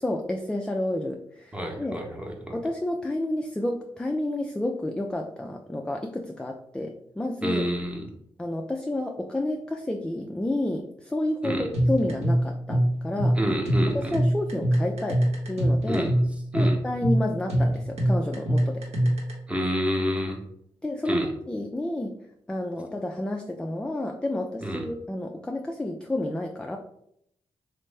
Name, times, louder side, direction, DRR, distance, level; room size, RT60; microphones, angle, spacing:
voice 1, 0.0-2.0 2.5-7.7 8.4-13.4 13.9-15.2 15.5-16.1 16.5-18.8 20.8-22.1 22.5-26.8, left 1 dB, 10° left, 2 dB, 0.3 m, -30 dB
voice 2, 1.5-2.6 7.4-8.1 11.4-11.7 13.3-14.2 15.9-16.1 16.5-16.8 19.5-20.4 21.1-21.3 24.6-24.8, equal, 10° right, 0 dB, 0.8 m, -28 dB
sound 1, 11.7-19.3, equal, 80° right, 0.8 m, -23 dB
3.0 x 2.0 x 3.3 m, 0.73 s
cardioid pair, 55°, 11 cm